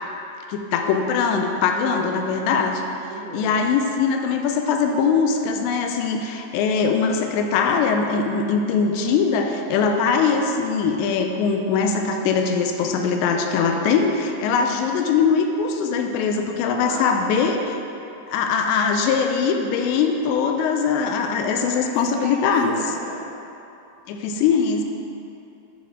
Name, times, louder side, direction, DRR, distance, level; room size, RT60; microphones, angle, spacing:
voice 1, 0.5-2.8 3.3-17.8 18.3-22.7 24.1-24.8, left 5 dB, 85° left, 4 dB, 2.7 m, -21 dB
voice 2, 1.7-2.2 3.1-3.5 13.6-13.9 16.8-17.4 21.4-23.3, right 3 dB, 90° right, -4 dB, 3.1 m, -35 dB
9.5 x 6.4 x 3.6 m, 2.8 s
omnidirectional pair, 5.3 m